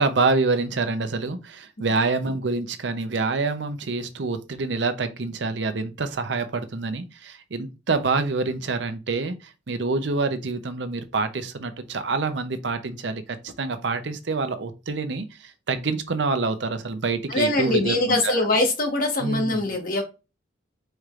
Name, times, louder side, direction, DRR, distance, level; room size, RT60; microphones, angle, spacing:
voice 1, 0.0-18.4 19.2-19.6, right 3 dB, 65° right, 0.7 m, -26 dB
voice 2, 17.3-20.0, left 2 dB, 50° left, 1.3 m, -23 dB
4.8 x 4.4 x 2.4 m
head